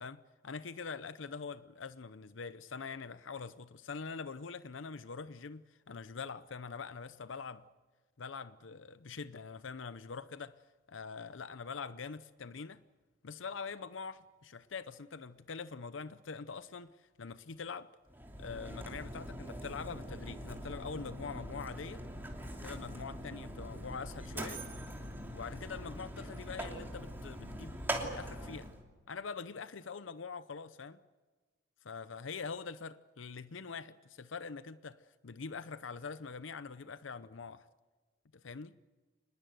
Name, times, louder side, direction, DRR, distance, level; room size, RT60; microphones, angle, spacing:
voice 1, 0.0-7.6 8.2-10.6 10.9-12.8 13.2-18.0 18.4-22.0 22.5-24.6 25.3-28.7 29.1-31.0 31.8-37.7 38.3-38.8, left 5 dB, 90° left, 0.7 m, -44 dB
Mechanisms, 18.1-28.8, right 1 dB, 10° right, 3.0 m, -42 dB
26.0 x 20.5 x 7.9 m
head